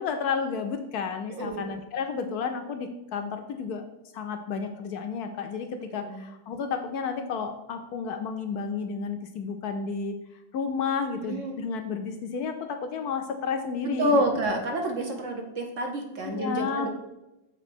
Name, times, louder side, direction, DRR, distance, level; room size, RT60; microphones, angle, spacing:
voice 1, 0.0-3.8 4.1-10.2 10.5-14.1 16.3-16.9, left 5 dB, 70° left, 6 dB, 1.0 m, -31 dB
voice 2, 1.3-1.7 6.0-6.2 11.3-11.6 13.8-16.9, equal, 55° right, 2 dB, 1.1 m, -28 dB
7.1 x 3.3 x 5.9 m, 0.93 s
omnidirectional pair, 1.9 m